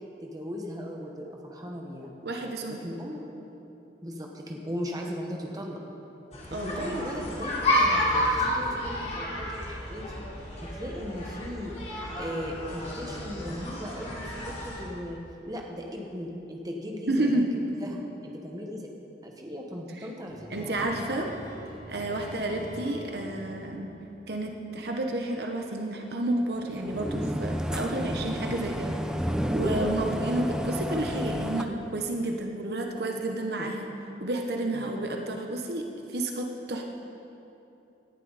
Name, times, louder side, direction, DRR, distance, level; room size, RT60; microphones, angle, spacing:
voice 1, 0.2-2.1 2.7-3.5 4.0-5.8 6.6-10.2 10.7-15.2 15.5-17.4 17.7-18.9 19.2-21.0 28.1-28.3 29.6-29.9 33.6-33.7 34.7-34.9, equal, 20° right, 0 dB, 1.3 m, -38 dB
voice 2, 2.2-2.8 6.5-7.1 17.1-17.5 20.0-20.1 20.5-21.3 21.9-23.9 24.3-28.9 29.5-33.9 34.2-36.8, right 2 dB, 65° right, 2 dB, 1.0 m, -31 dB
sound 1, 6.3-14.8, left 1 dB, 40° left, 3.1 m, -30 dB
sound 2, 20.3-25.2, equal, 75° left, 3.0 m, -44 dB
sound 3, 26.6-31.6, equal, 5° right, 0.5 m, -30 dB
18.0 x 11.0 x 4.1 m, 2.9 s
head